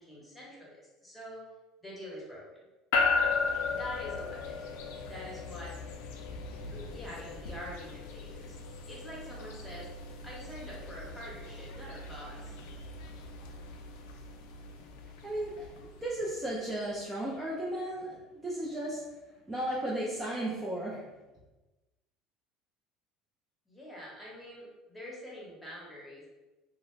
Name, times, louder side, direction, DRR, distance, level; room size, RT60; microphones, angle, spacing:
voice 1, 0.0-1.4 1.8-2.6 3.7-4.6 5.0-5.7 6.5-8.6 8.9-9.9 10.2-12.5 23.7-26.3, left 1 dB, 5° left, -5 dB, 1.0 m, -45 dB
sound 1, 2.9-17.2, left 4 dB, 85° left, 0.3 m, -36 dB
voice 2, 15.2-19.0 19.5-21.0, right 1 dB, 15° right, -6 dB, 0.5 m, -35 dB
2.4 x 2.1 x 3.1 m, 1.1 s
supercardioid pair, 115°, 0 cm